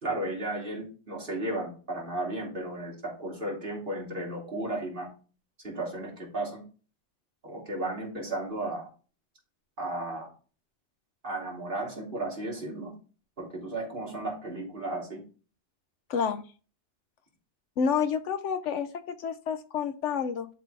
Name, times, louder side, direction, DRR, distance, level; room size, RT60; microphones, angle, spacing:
voice 1, 0.0-5.1 5.6-6.6 7.4-8.9 9.8-10.3 11.2-12.9 13.4-15.2, right 2 dB, 40° right, -3 dB, 2.8 m, -34 dB
voice 2, 16.1-16.4 17.8-20.5, left 6 dB, 75° left, 11 dB, 0.9 m, -29 dB
11.5 x 4.0 x 3.3 m, 0.38 s
omnidirectional pair, 1.3 m